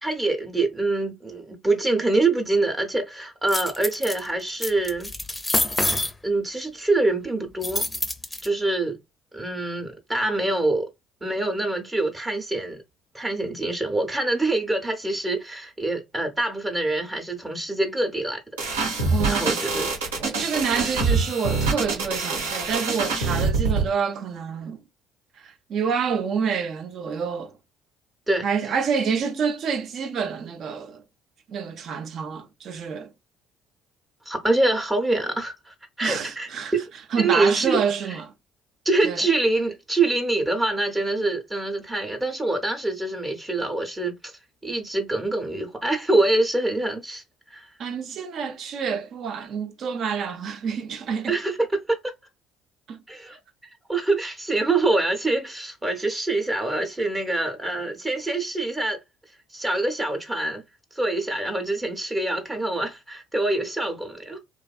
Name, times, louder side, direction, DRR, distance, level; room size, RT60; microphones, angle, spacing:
voice 1, 0.0-5.1 6.2-7.8 8.4-9.0 9.3-10.8 11.2-12.8 13.1-18.4 19.3-19.9 28.3-28.4 34.3-36.8 37.2-38.2 38.8-44.3 44.6-47.2 47.5-47.7 51.3-52.1 53.1-53.4 53.9-59.0 59.5-60.6 60.9-64.4, right 2 dB, 20° right, 0.8 m, -25 dB
sound 1, 3.5-4.2 4.6-6.1 7.6-8.5, left 2 dB, 15° left, 0.6 m, -26 dB
sound 2, 18.6-23.9, right 4 dB, 85° right, 0.9 m, -25 dB
voice 2, 19.1-19.5 20.2-24.8 25.4-27.5 28.4-31.0 31.5-33.1 36.0-36.7 37.1-38.3 39.0-39.2 47.8-51.4 52.9-53.0, right 6 dB, 55° right, 0.5 m, -28 dB
2.5 x 2.4 x 2.3 m
hypercardioid pair, 60°, 0 cm